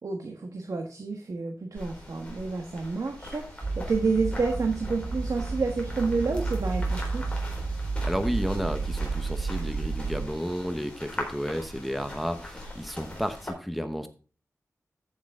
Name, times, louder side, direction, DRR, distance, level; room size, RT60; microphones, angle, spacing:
voice 1, 0.0-7.4, right 4 dB, 70° right, 3 dB, 1.3 m, -29 dB
sound 1, 1.7-13.5, left 1 dB, 20° left, 4.0 m, -41 dB
sound 2, 3.6-10.3, right 3 dB, 40° right, 1.1 m, -31 dB
voice 2, 8.0-14.1, equal, ahead, 8 dB, 0.9 m, -32 dB
14.0 x 6.4 x 3.6 m, 0.36 s
wide cardioid pair, 105°, 6 cm